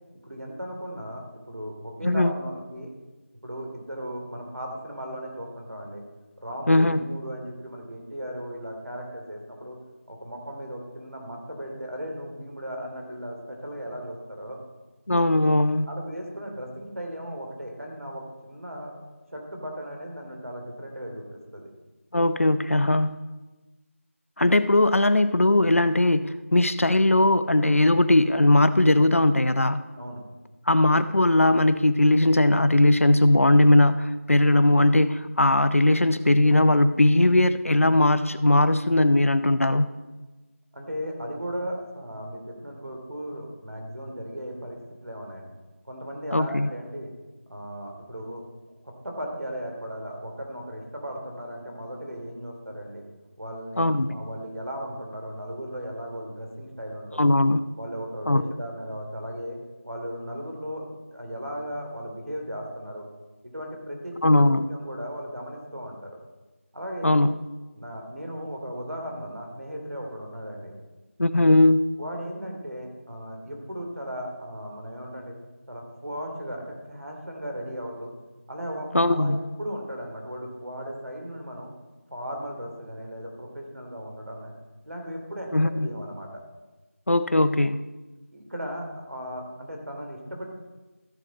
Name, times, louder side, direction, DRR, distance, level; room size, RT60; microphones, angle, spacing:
voice 1, 0.2-2.9 3.4-6.0 6.4-9.8 10.1-14.6 15.9-19.0 19.3-21.7 30.0-30.2 40.7-45.5 45.8-47.1 47.5-48.4 48.8-53.0 53.4-57.3 57.8-59.6 59.8-63.0 63.5-66.2 66.7-67.2 67.7-70.7 72.0-75.3 75.7-78.1 78.5-81.7 82.1-84.5 84.9-86.3 88.3-90.5, equal, 75° right, 1 dB, 2.8 m, -36 dB
voice 2, 6.7-7.0 15.1-15.9 22.1-23.2 24.4-29.8 30.7-39.9 46.3-46.7 53.8-54.1 57.2-57.6 58.3-58.4 64.2-64.7 67.0-67.3 71.2-71.9 78.9-79.4 85.5-85.9 87.1-87.8, left 1 dB, 70° left, 12 dB, 0.6 m, -19 dB
14.0 x 6.7 x 4.1 m, 1.2 s
figure-of-eight pair, 175°, 8 cm